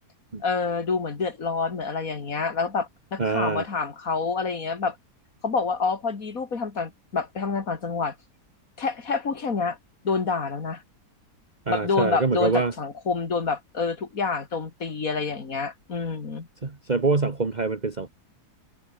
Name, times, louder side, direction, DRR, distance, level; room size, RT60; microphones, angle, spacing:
voice 1, 0.4-5.0 5.4-8.1 8.8-9.8 10.0-10.8 11.7-16.5, left 4 dB, 55° left, 2.9 m, -27 dB
voice 2, 3.2-3.6 11.7-12.7 16.6-18.1, right 4 dB, 25° right, 1.8 m, -25 dB
omnidirectional pair, 1.8 m